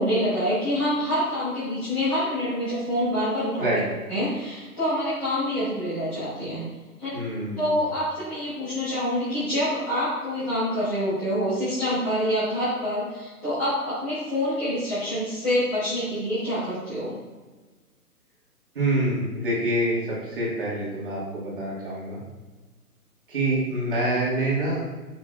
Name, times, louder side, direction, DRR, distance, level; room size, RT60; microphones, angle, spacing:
voice 1, 0.0-3.7 4.1-6.6 7.0-7.1 7.6-17.1, equal, 5° left, -19 dB, 1.1 m, -26 dB
voice 2, 7.1-7.7 18.7-22.2 23.3-24.8, right 1 dB, 35° right, -6 dB, 1.9 m, -26 dB
6.6 x 5.9 x 2.4 m, 1.3 s
hypercardioid pair, 175°, 46 cm